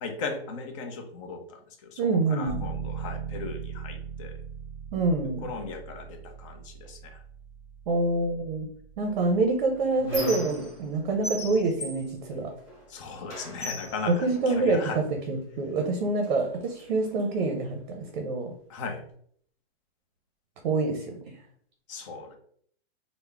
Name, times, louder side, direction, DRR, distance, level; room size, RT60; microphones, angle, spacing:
voice 1, 0.0-2.0 2.3-4.4 5.4-7.2 12.9-15.0 18.7-19.0 21.9-22.4, left 4 dB, 30° left, 4 dB, 0.6 m, -37 dB
voice 2, 2.0-2.7 4.9-5.4 7.9-8.7 9.0-12.6 14.1-18.5 20.6-21.4, right 3 dB, 50° right, 3 dB, 0.6 m, -26 dB
sound 1, 2.5-13.0, right 6 dB, 10° left, 0.9 m, -41 dB
Squeak, 9.2-10.9 11.2-12.9 13.3-15.0 15.8-15.9 16.2-17.2, left 1 dB, 10° right, 1.3 m, -38 dB
3.4 x 2.1 x 3.4 m, 0.62 s
hypercardioid pair, 160°, 31 cm